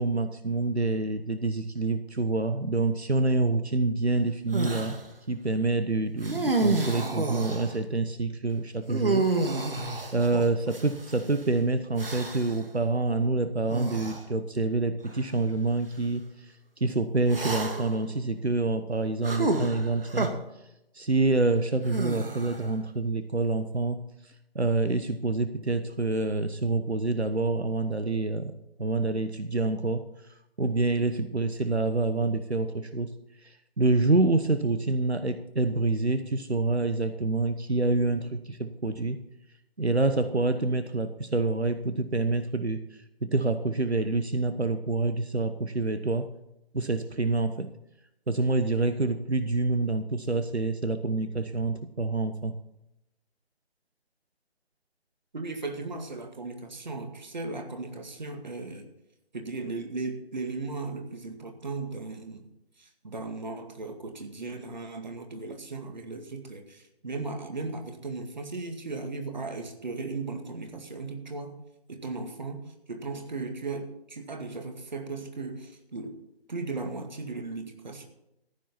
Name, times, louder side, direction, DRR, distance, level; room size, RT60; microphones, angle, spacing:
voice 1, 0.0-5.0 5.3-9.3 10.1-16.5 16.8-20.4 20.9-24.0 24.5-28.5 28.8-30.1 30.6-33.1 33.4-39.2 39.8-42.8 43.2-46.3 46.7-47.7 48.3-52.5, right 3 dB, 85° right, 10 dB, 1.1 m, -27 dB
sound 1, 4.5-5.0 6.2-7.8 8.9-11.2 12.0-12.6 13.7-14.2 15.1-15.2 17.3-18.0 19.2-20.3 21.9-22.7, right 2 dB, 60° right, 2.0 m, -29 dB
voice 2, 55.3-58.9 59.3-62.4 62.8-71.6 71.9-76.2 76.5-78.1, right 3 dB, 45° right, 5 dB, 2.1 m, -36 dB
15.0 x 9.7 x 4.3 m, 0.86 s
figure-of-eight pair, 155°, 32 cm